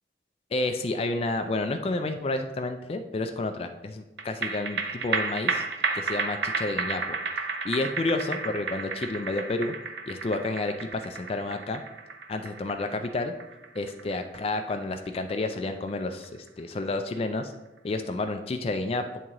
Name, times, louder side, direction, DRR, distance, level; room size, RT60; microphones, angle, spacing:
voice 1, 0.5-5.6 5.9-7.0 7.6-9.7 10.1-11.8 12.3-13.3 13.7-17.5 17.8-19.2, left 2 dB, 30° left, 7 dB, 0.3 m, -30 dB
sound 1, 4.2-16.8 17.2-17.3, right 4 dB, 75° right, 0.5 m, -33 dB
8.9 x 3.6 x 2.9 m, 0.98 s
head